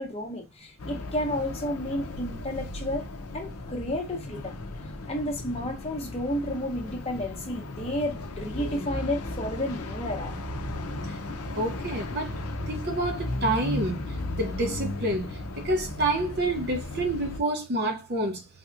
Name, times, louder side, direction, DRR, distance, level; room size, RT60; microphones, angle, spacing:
voice 1, 0.0-3.0 3.3-4.5 5.1-10.3, left 1 dB, 25° left, 0.8 m, -31 dB
sound 1, 0.8-17.4, left 1 dB, 85° left, 0.6 m, -35 dB
voice 2, 11.6-12.3 12.7-14.0 14.4-15.3 15.6-18.4, right 2 dB, 45° right, 0.7 m, -28 dB
3.4 x 2.8 x 2.4 m
head